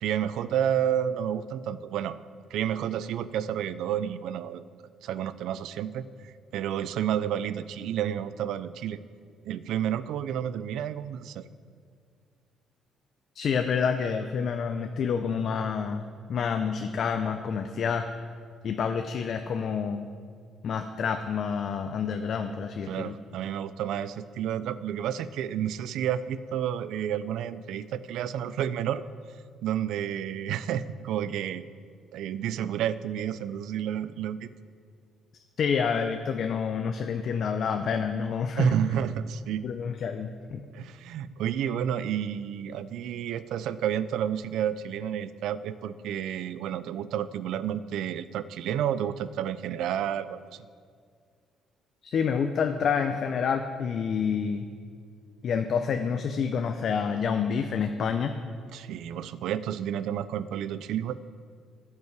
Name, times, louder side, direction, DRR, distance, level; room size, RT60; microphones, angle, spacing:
voice 1, 0.0-2.2 2.5-4.6 5.0-9.0 9.4-11.5 22.9-29.0 29.6-31.7 32.1-34.5 38.6-39.6 40.7-50.6 58.7-61.2, right 9 dB, 75° right, 15 dB, 0.3 m, -30 dB
voice 2, 13.3-16.0 16.3-18.1 18.6-20.1 20.6-23.2 35.6-38.7 39.6-40.6 52.0-54.7 55.4-58.4, left 6 dB, 50° left, 7 dB, 0.4 m, -28 dB
16.0 x 5.6 x 4.6 m, 2.1 s
cardioid pair, 145°, 0 cm